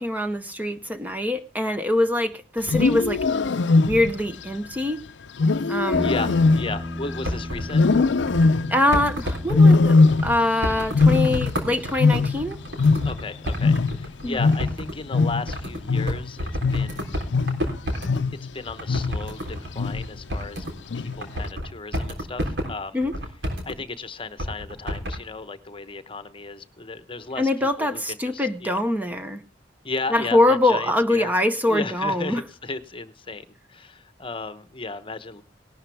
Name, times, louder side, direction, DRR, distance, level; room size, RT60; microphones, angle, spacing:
voice 1, 0.0-3.2 3.8-5.0 5.7-6.1 8.7-12.6 14.2-14.4 22.9-23.1 27.4-29.4 30.1-32.4, left 1 dB, 10° right, 8 dB, 0.8 m, -23 dB
Wild animals, 2.6-4.3 5.4-7.3 7.7-8.9 9.5-10.6 10.8-13.3 13.6-18.5 18.9-19.3 19.8-20.2 20.9-21.4, left 3 dB, 80° left, 0.6 m, -20 dB
voice 2, 5.9-7.8 13.0-16.5 16.7-17.1 18.5-20.7 21.0-23.0 23.7-27.5 27.8-28.8 29.8-31.3 31.6-35.4, left 3 dB, 30° left, 13 dB, 0.9 m, -35 dB
sound 1, 5.9-14.3, left 1 dB, 10° left, 1.5 m, -38 dB
sound 2, 7.2-8.5 8.9-18.2 18.6-20.9 21.1-23.8 24.4-25.2, equal, 75° right, 3.6 m, -31 dB
18.5 x 12.0 x 3.4 m, 0.32 s
head